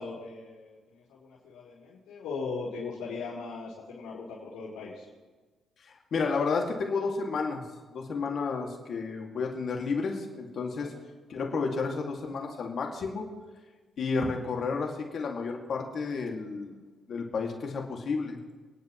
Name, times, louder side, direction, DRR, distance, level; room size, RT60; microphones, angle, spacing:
voice 1, 0.0-5.1 10.8-11.0, left 4 dB, 90° left, -8 dB, 4.8 m, -39 dB
voice 2, 5.9-7.6 7.9-10.9 11.3-13.3 14.0-16.8 17.1-18.4, left 4 dB, 55° left, 0 dB, 2.4 m, -31 dB
30.0 x 10.5 x 3.2 m, 1.3 s
cardioid pair, 90°, 0 cm